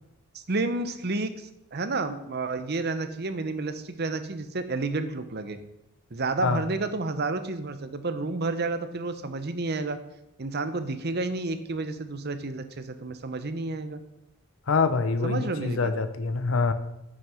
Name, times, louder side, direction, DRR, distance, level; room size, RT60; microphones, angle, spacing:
voice 1, 0.3-1.3 1.7-5.6 6.1-10.0 10.4-14.0 15.2-15.9, right 3 dB, 55° right, 10 dB, 0.9 m, -30 dB
voice 2, 14.7-16.7, left 4 dB, 75° left, 10 dB, 0.7 m, -25 dB
9.4 x 6.4 x 5.7 m, 0.89 s
head